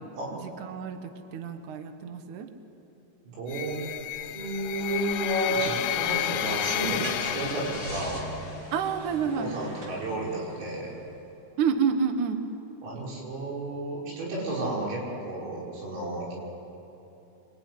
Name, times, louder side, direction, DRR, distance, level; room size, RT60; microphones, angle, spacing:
voice 1, 0.4-1.0 1.3-2.5 8.7-9.5 11.6-12.4, right 6 dB, 70° right, 7 dB, 1.9 m, -28 dB
voice 2, 3.3-3.8 4.3-8.2 9.4-10.9 12.8-16.3, right 2 dB, 90° right, -4 dB, 8.4 m, -32 dB
sound 1, 3.5-8.5, left 12 dB, 90° left, 3.7 m, -31 dB
Car / Engine starting, 6.7-11.3, equal, 35° right, 4.0 m, -40 dB
26.0 x 22.5 x 9.6 m, 3.0 s
omnidirectional pair, 5.9 m